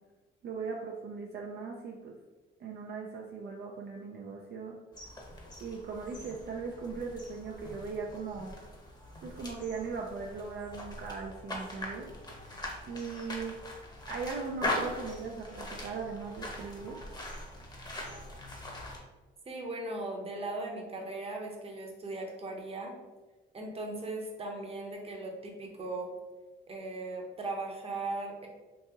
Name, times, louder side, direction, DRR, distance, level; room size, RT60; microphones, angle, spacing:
voice 1, 0.4-2.1 2.6-4.8 5.6-8.6 9.2-12.1 12.9-13.6 14.1-17.1, right 4 dB, 55° right, 0 dB, 0.4 m, -39 dB
sound 1, 4.9-19.0, left 1 dB, 20° left, 0.8 m, -41 dB
voice 2, 19.5-23.0 23.5-26.1 26.7-28.5, right 2 dB, 30° right, 1 dB, 0.8 m, -38 dB
2.9 x 2.7 x 3.5 m, 1.2 s
cardioid pair, 90°, 20 cm